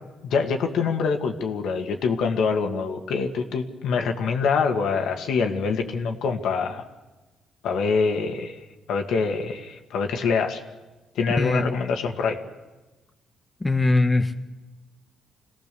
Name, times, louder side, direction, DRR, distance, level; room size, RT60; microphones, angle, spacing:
voice 1, 0.2-6.8 7.6-8.6 8.9-10.6 11.2-12.4, left 5 dB, 80° left, 4 dB, 2.1 m, -25 dB
voice 2, 13.6-14.5, left 2 dB, 20° left, 6 dB, 1.3 m, -21 dB
26.5 x 17.5 x 7.0 m, 1.2 s
cardioid pair, 90°, 0 cm